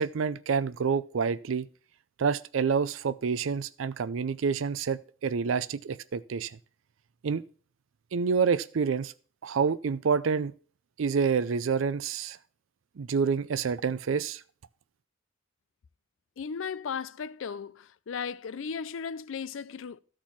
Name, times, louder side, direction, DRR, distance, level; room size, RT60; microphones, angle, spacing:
voice 1, 0.0-1.7 2.2-6.6 7.2-7.4 8.1-9.1 9.4-10.5 11.0-12.4 13.0-14.4, right 5 dB, 75° right, 0.4 m, -28 dB
voice 2, 16.4-20.0, left 6 dB, 70° left, 0.4 m, -36 dB
13.0 x 4.4 x 5.8 m
head